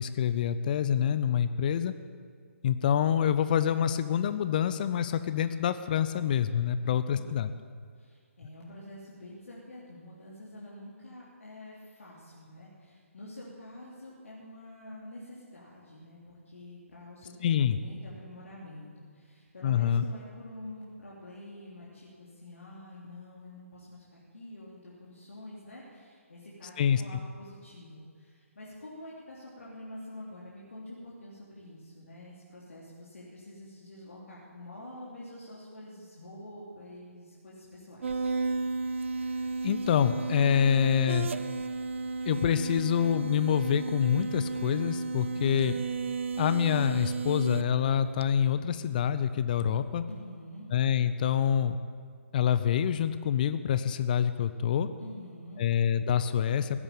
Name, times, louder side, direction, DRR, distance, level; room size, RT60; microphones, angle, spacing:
voice 1, 0.0-1.9 2.6-7.5 17.4-17.8 19.6-20.0 26.8-27.0 39.6-41.3 42.3-45.7 46.4-50.0 50.7-51.8 52.3-54.9 55.6-56.8, left 9 dB, 35° left, 12 dB, 0.6 m, -26 dB
voice 2, 6.8-7.5 8.0-38.3 50.0-50.7 55.0-55.7, left 1 dB, 65° left, -6 dB, 3.1 m, -47 dB
sound 1, 38.0-48.5, right 4 dB, 55° right, 0.7 m, -33 dB
16.0 x 8.8 x 8.4 m, 2.1 s
figure-of-eight pair, 140°, 8 cm